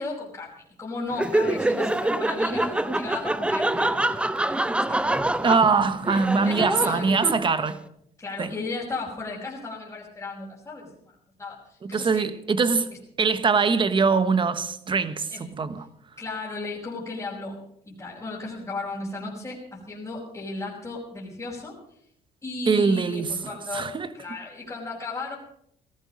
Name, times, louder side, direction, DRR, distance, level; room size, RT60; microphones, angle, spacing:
voice 1, 0.0-5.2 6.4-7.3 8.2-11.1 11.4-12.3 15.3-15.5 16.2-17.6 17.8-21.8 22.4-25.4, left 3 dB, 15° left, 4.8 m, -35 dB
Laughter, 1.1-7.7, right 1 dB, 5° right, 0.6 m, -25 dB
voice 2, 5.4-7.8 8.4-8.5 11.8-12.9 13.2-15.3 15.6-15.9 22.7-23.3 23.7-24.1, right 5 dB, 30° right, 1.2 m, -22 dB
17.5 x 14.0 x 5.3 m
cardioid pair, 110°, 17 cm